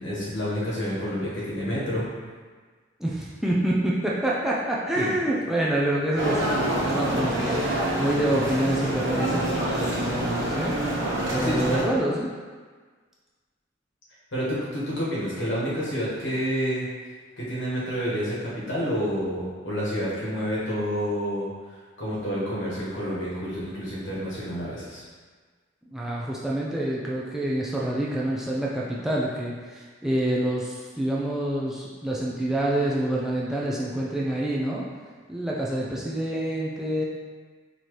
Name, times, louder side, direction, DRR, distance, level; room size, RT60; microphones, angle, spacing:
voice 1, 0.0-2.0 4.9-5.1 11.4-11.9 14.3-16.9 17.4-25.0, equal, 70° left, -8 dB, 1.4 m, -29 dB
voice 2, 3.0-10.8 11.3-12.3 25.9-34.8 35.3-37.0, right 1 dB, ahead, -5 dB, 0.3 m, -27 dB
sound 1, 6.1-11.8, right 1 dB, 75° right, 0.9 m, -27 dB
4.2 x 2.8 x 3.1 m, 1.5 s
head